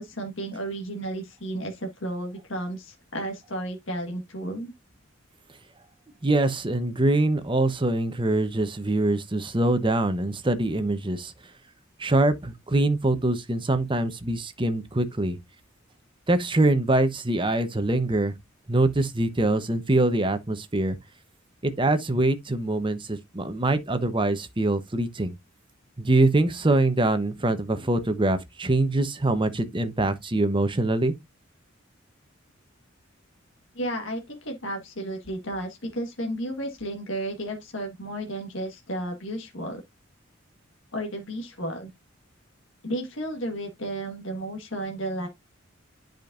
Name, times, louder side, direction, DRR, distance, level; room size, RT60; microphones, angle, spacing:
voice 1, 0.0-4.7 33.7-39.8 40.9-41.9 42.8-45.3, right 1 dB, 70° left, 1.6 m, -33 dB
voice 2, 6.2-11.3 12.0-15.4 16.3-18.3 18.7-21.0 21.6-25.4 26.0-31.1, right 2 dB, 25° right, 1.0 m, -24 dB
10.5 x 5.2 x 2.6 m
head